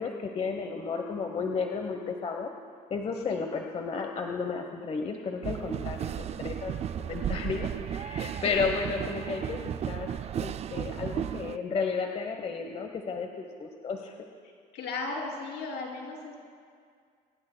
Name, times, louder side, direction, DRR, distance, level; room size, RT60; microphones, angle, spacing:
voice 1, 0.0-2.5 2.9-6.7 7.0-10.1 10.3-14.2, left 5 dB, 35° left, 3 dB, 1.0 m, -33 dB
sound 1, 5.4-11.6, right 9 dB, 40° right, 0.4 m, -34 dB
voice 2, 14.7-16.4, left 3 dB, 75° left, 0 dB, 3.2 m, -35 dB
24.5 x 16.0 x 2.3 m, 2.1 s
cardioid pair, 110°, 17 cm